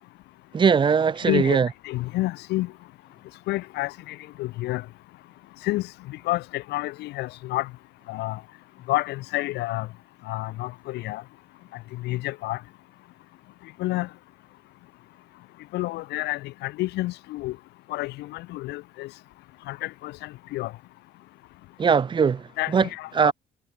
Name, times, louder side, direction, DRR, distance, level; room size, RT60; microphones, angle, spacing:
voice 1, 0.5-1.7 21.8-22.9 23.1-23.3, right 6 dB, 30° right, 0.7 m, -20 dB
voice 2, 1.2-1.6 1.8-2.7 3.5-4.8 5.6-7.7 8.1-8.4 8.9-9.9 10.3-11.2 11.9-12.6 13.8-14.1 15.7-17.6 17.9-19.1 19.7-20.7 22.6-23.3, left 18 dB, 85° left, 1.7 m, -29 dB
cardioid pair, 110°, 17 cm